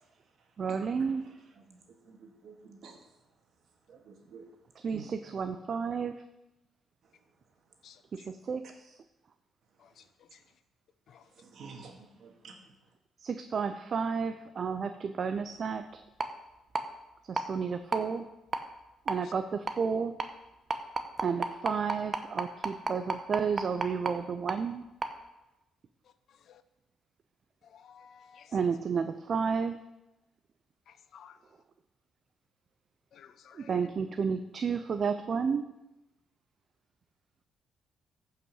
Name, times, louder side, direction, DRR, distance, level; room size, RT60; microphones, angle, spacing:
voice 1, 0.6-1.2 4.8-6.2 8.3-9.0 13.2-16.0 17.3-18.3 19.1-20.2 21.2-24.8 28.5-29.8 33.5-35.7, right 6 dB, 50° right, 9 dB, 0.6 m, -31 dB
voice 2, 2.1-3.0 3.9-4.5 4.9-5.1 11.4-12.6, right 5 dB, 65° right, 2 dB, 2.1 m, -49 dB
voice 3, 7.8-8.3 9.8-10.4 11.1-11.3 19.2-19.3 26.3-26.6 27.6-28.6 30.9-31.4 33.1-33.8, left 8 dB, 70° left, 12 dB, 0.7 m, -56 dB
sound 1, 16.2-16.3 16.7-16.8 17.4-17.5 17.9-18.0 18.5-18.6 19.1-19.2 19.7-19.8 20.2-20.3 20.7-24.1 24.5-24.6 25.0-25.1, right 3 dB, 30° right, 1.1 m, -30 dB
14.5 x 5.7 x 5.5 m, 0.96 s
cardioid pair, 90°, 0 cm